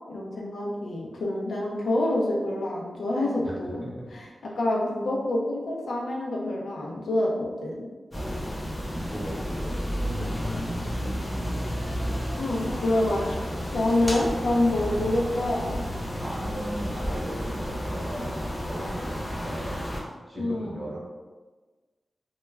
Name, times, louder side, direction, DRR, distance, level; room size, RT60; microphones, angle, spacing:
voice 1, 0.1-3.8 4.1-7.8 12.4-13.4 13.7-15.8 20.4-20.8, left 1 dB, 80° left, -2 dB, 0.5 m, -27 dB
voice 2, 3.4-4.1 8.1-11.4 14.2-14.4 16.2-19.8 20.3-21.0, right 1 dB, 20° right, -6 dB, 0.8 m, -38 dB
sound 1, 8.1-20.0, equal, 25° left, 0.5 m, -31 dB
2.2 x 2.2 x 3.1 m, 1.3 s
wide cardioid pair, 100°, 0 cm